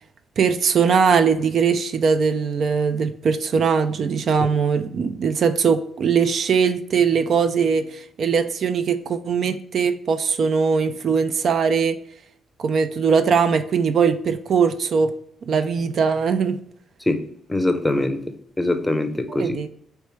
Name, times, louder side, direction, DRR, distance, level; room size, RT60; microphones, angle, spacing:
voice 1, 0.4-12.0 12.6-15.1 15.5-16.6 19.3-19.7, right 6 dB, 55° right, 11 dB, 0.4 m, -20 dB
voice 2, 17.5-18.2 18.6-19.6, left 1 dB, 10° left, 8 dB, 0.6 m, -22 dB
4.6 x 3.2 x 3.1 m, 0.68 s
cardioid pair, 90°, 0 cm